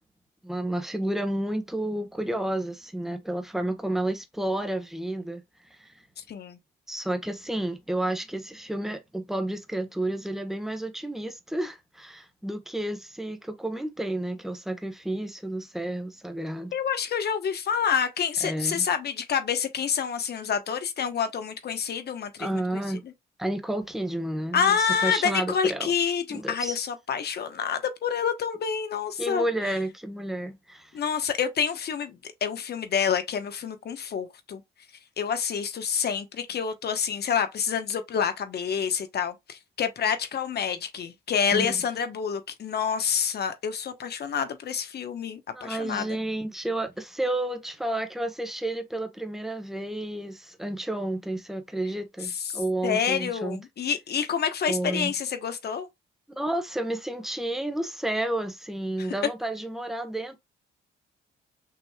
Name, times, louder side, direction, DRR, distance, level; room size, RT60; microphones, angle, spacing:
voice 1, 0.4-5.9 6.9-16.7 18.4-18.9 22.4-23.0 23.4-25.9 26.3-26.8 29.2-30.9 41.5-41.8 45.5-53.6 54.7-55.1 56.3-60.4, right 1 dB, ahead, 1.2 m, -31 dB
voice 2, 6.2-6.6 16.7-22.8 24.5-29.4 30.9-34.6 35.2-46.2 52.2-55.9 59.0-59.1, left 7 dB, 55° left, 1.1 m, -28 dB
6.0 x 3.1 x 2.3 m
cardioid pair, 90°, 20 cm